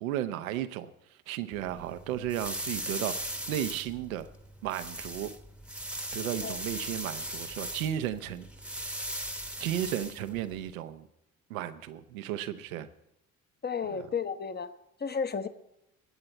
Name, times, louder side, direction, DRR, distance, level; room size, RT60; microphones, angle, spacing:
voice 1, 0.0-3.2 3.5-4.3 4.6-5.3 6.1-8.8 9.6-11.1 11.5-12.9 13.8-14.0, right 11 dB, 70° right, 11 dB, 0.9 m, -34 dB
sound 1, 1.5-10.7, right 1 dB, 5° right, 1.2 m, -39 dB
voice 2, 13.6-14.7 15.0-15.5, left 6 dB, 25° left, 11 dB, 1.0 m, -32 dB
22.0 x 8.8 x 4.3 m, 0.87 s
figure-of-eight pair, 50°, 42 cm